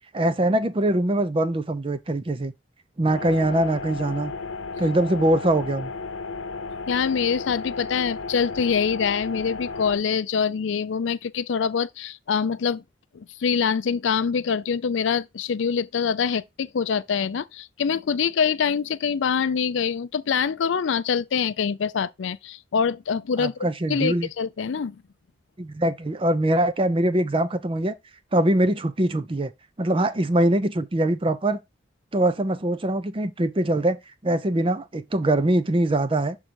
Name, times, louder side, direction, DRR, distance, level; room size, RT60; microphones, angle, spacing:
voice 1, 0.1-2.5 3.0-4.3 4.8-5.9 23.4-24.3 25.6-27.9 28.3-29.5 29.8-31.6 32.1-36.4, right 1 dB, 25° right, 0.5 m, -23 dB
sound 1, 3.1-10.0, left 4 dB, 90° left, 0.8 m, -34 dB
voice 2, 6.9-12.8 13.1-25.0, left 6 dB, 75° left, 0.4 m, -25 dB
6.5 x 3.7 x 4.5 m
head